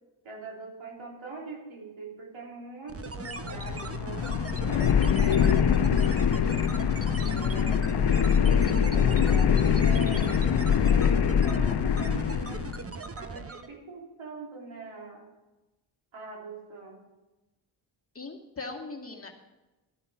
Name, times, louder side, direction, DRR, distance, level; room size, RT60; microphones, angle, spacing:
voice 1, 0.2-6.4 7.2-8.0 8.6-15.2 16.1-17.1, right 3 dB, 90° right, -1 dB, 3.2 m, -43 dB
sound 1, 2.9-13.8, right 4 dB, 30° right, 0.9 m, -39 dB
sound 2, 3.2-12.8, left 7 dB, 60° left, 0.8 m, -24 dB
voice 2, 18.1-19.4, left 3 dB, 30° left, 1 dB, 2.1 m, -40 dB
13.0 x 9.9 x 5.7 m, 1.1 s
cardioid pair, 70°, 47 cm